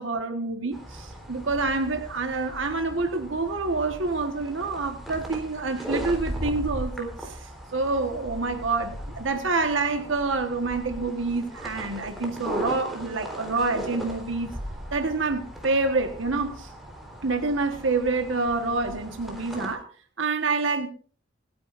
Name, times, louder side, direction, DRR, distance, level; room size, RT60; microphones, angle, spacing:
voice 1, 0.0-14.5 14.9-16.7 17.2-19.9 20.2-20.9, right 3 dB, 75° right, 5 dB, 1.4 m, -27 dB
sound 1, 0.7-19.7, equal, ahead, 3.9 m, -38 dB
28.0 x 10.5 x 2.6 m, 0.40 s
head